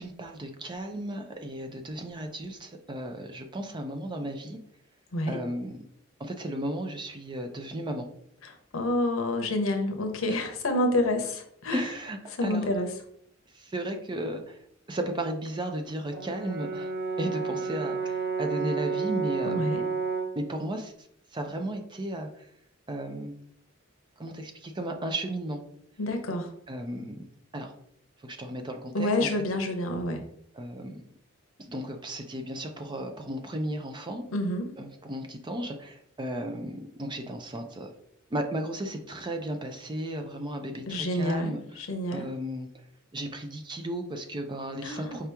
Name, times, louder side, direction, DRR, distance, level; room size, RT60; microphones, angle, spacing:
voice 1, 0.0-4.6 5.3-5.8 6.2-8.1 10.3-10.4 11.7-12.7 13.5-14.6 14.9-16.9 17.2-19.7 20.3-20.9 21.3-22.5 22.9-23.3 24.2-25.6 26.7-27.2 27.5-27.7 28.2-29.3 30.5-31.0 31.6-34.2 34.8-37.9 38.3-41.6 42.1-42.7 43.1-45.3, right 1 dB, 20° right, 5 dB, 0.5 m, -34 dB
voice 2, 8.4-11.8 12.4-12.9 19.4-19.8 26.0-26.5 28.9-30.2 34.3-34.7 40.9-42.3 44.8-45.2, left 1 dB, 75° left, 5 dB, 0.8 m, -28 dB
Brass instrument, 16.1-20.4, right 5 dB, 60° right, 1.0 m, -31 dB
4.8 x 2.9 x 3.4 m, 0.67 s
head